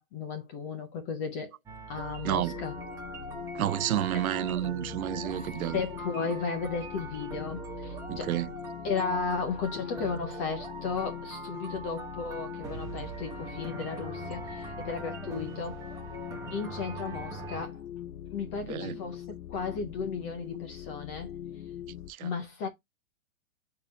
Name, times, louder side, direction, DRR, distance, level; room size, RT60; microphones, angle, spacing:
voice 1, 0.0-1.5 1.9-2.7 5.3-8.4 8.8-15.8 16.5-17.8 18.3-21.4 22.2-22.7, left 5 dB, 10° left, 0.4 m, -35 dB
sound 1, 1.7-17.7, right 4 dB, 10° right, 0.8 m, -42 dB
sound 2, 2.3-22.1, left 11 dB, 65° left, 0.9 m, -42 dB
voice 2, 3.6-5.8 8.1-8.5 18.7-19.0 22.1-22.3, right 12 dB, 85° right, 0.6 m, -30 dB
9.1 x 3.8 x 2.8 m
hypercardioid pair, 150°, 42 cm